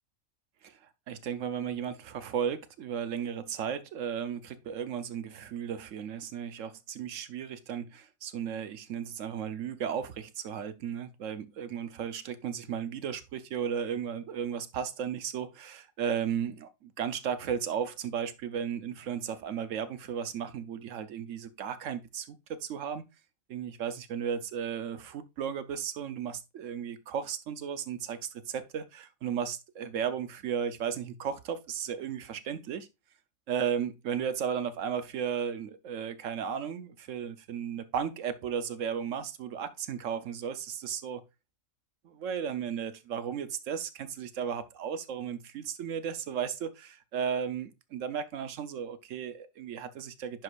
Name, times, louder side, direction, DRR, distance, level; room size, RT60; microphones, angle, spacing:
voice 1, 0.6-23.0 23.5-32.9 33.5-41.2 42.0-50.4, right 8 dB, 70° right, 1.0 m, -35 dB
10.5 x 4.8 x 2.4 m
omnidirectional pair, 1.4 m